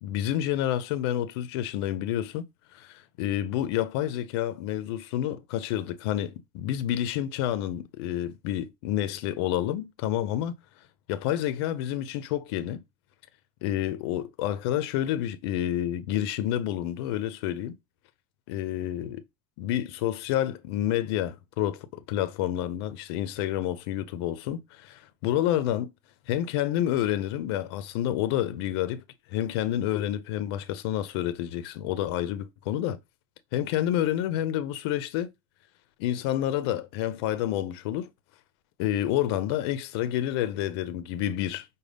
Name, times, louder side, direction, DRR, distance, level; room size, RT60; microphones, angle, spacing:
voice 1, 0.0-2.4 2.7-10.5 11.1-12.8 13.6-17.8 18.5-19.2 19.6-25.9 26.3-29.0 29.3-33.0 33.5-35.3 36.0-38.1 38.8-41.7, left 12 dB, 70° left, 0.5 m, -29 dB
5.1 x 2.2 x 3.3 m
supercardioid pair, 160°, 14 cm